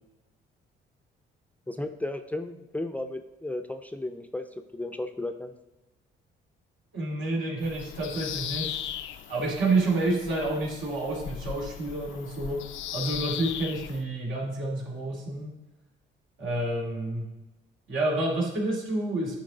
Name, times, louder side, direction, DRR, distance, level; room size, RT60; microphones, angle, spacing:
voice 1, 1.7-4.4 4.7-5.5, left 2 dB, 5° left, 7 dB, 0.5 m, -34 dB
voice 2, 6.9-8.9 9.3-15.5 16.4-17.3 17.9-19.4, right 2 dB, 75° right, -2 dB, 2.5 m, -29 dB
Bird vocalization bird call bird song, 7.6-14.0, left 11 dB, 75° left, 0.4 m, -38 dB
9.2 x 4.5 x 3.9 m, 1.0 s
cardioid pair, 90°, 20 cm